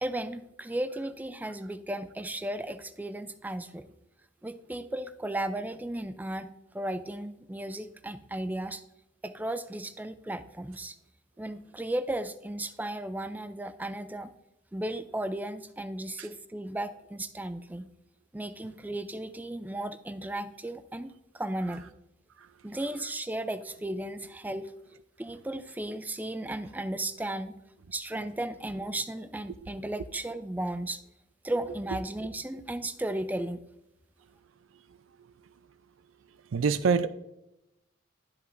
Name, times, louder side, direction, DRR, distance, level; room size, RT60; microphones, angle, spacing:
voice 1, 0.0-3.9 4.4-8.8 9.2-11.0 11.4-14.3 14.7-17.9 18.3-21.8 22.6-24.7 25.2-27.6 27.9-31.0 31.4-33.6, right 1 dB, 10° right, 0.4 m, -35 dB
voice 2, 36.5-37.1, right 5 dB, 80° right, 0.5 m, -25 dB
11.5 x 5.5 x 2.6 m
head